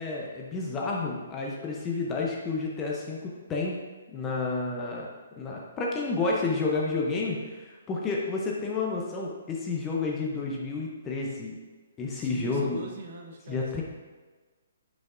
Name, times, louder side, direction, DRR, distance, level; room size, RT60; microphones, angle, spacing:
voice 1, 0.0-3.7 4.1-5.1 5.4-11.6 12.0-12.8 13.5-13.8, left 3 dB, 10° left, -2 dB, 0.6 m, -30 dB
voice 2, 12.1-13.8, right 3 dB, 40° right, 2 dB, 0.9 m, -42 dB
9.5 x 5.3 x 2.4 m, 1.4 s
hypercardioid pair, 175°, 0 cm